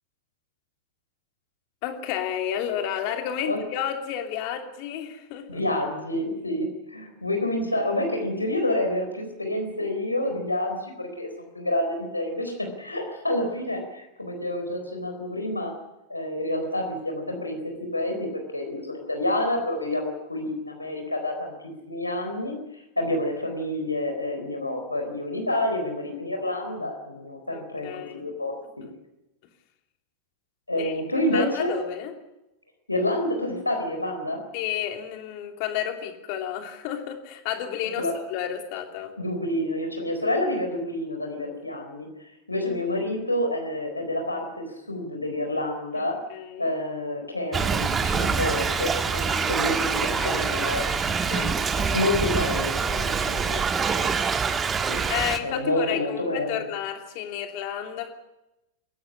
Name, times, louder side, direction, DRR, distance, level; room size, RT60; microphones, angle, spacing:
voice 1, 1.8-5.6 27.5-28.2 28.8-28.9 30.8-30.9 31.3-32.1 34.5-39.1 45.9-46.7 49.8-50.7 51.3-52.1 52.8-53.9 55.1-58.1, left 10 dB, 45° left, 5 dB, 3.0 m, -32 dB
voice 2, 5.5-15.7 16.1-21.5 21.9-28.8 30.7-31.7 32.9-34.4 38.0-38.1 39.2-42.1 42.5-46.2 46.6-51.5 51.9-53.5 54.9-55.0 55.4-56.5, left 1 dB, 85° left, 4 dB, 4.2 m, -28 dB
Thunder / Rain, 47.5-55.4, right 5 dB, 20° right, 1.7 m, -25 dB
22.5 x 17.0 x 9.8 m, 0.94 s
figure-of-eight pair, 90°, 0 cm